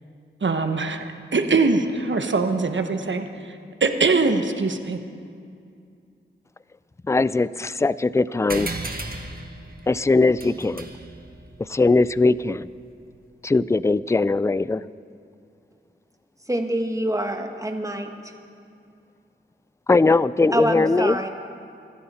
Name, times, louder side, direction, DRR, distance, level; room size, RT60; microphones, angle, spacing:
voice 1, 0.4-3.2 3.8-5.0, right 3 dB, 65° right, 7 dB, 1.1 m, -22 dB
voice 2, 7.0-8.7 9.9-10.9 11.6-12.7 13.4-14.8 19.9-21.2, left 3 dB, 15° left, 18 dB, 0.3 m, -20 dB
sound 1, 8.5-13.4, right 2 dB, 45° right, 1.5 m, -37 dB
voice 3, 16.5-18.1 20.5-21.3, right 1 dB, 15° right, 4 dB, 1.4 m, -25 dB
24.5 x 12.5 x 4.3 m, 2.4 s
wide cardioid pair, 65°, 21 cm